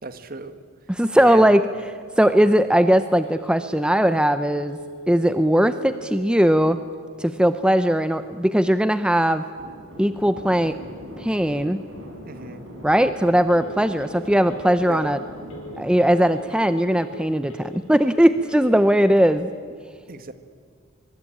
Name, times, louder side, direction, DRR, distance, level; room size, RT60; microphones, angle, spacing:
voice 1, 0.0-0.6 1.2-1.5 12.2-12.7 14.9-15.1 20.1-20.3, right 3 dB, 45° right, 11 dB, 1.5 m, -34 dB
voice 2, 0.9-1.6 2.2-4.8 5.1-6.8 7.2-9.4 10.0-10.8 11.2-11.8 12.8-15.2 15.8-19.5, equal, 5° right, 11 dB, 0.6 m, -19 dB
Telephone, 3.2-19.3, right 1 dB, 70° left, 5.5 m, -42 dB
sound 1, 9.6-17.9, equal, 65° right, 7.2 m, -41 dB
24.0 x 23.0 x 8.9 m, 2.1 s
head